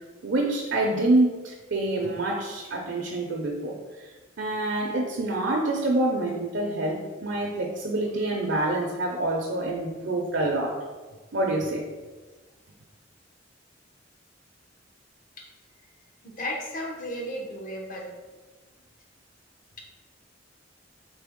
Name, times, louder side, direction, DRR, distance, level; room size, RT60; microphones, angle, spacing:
voice 1, 0.2-4.1 4.4-10.8 11.3-11.8, right 2 dB, 65° right, 0 dB, 0.6 m, -26 dB
voice 2, 16.2-18.1, equal, 45° left, 0 dB, 0.8 m, -34 dB
4.2 x 3.4 x 3.6 m, 1.3 s
head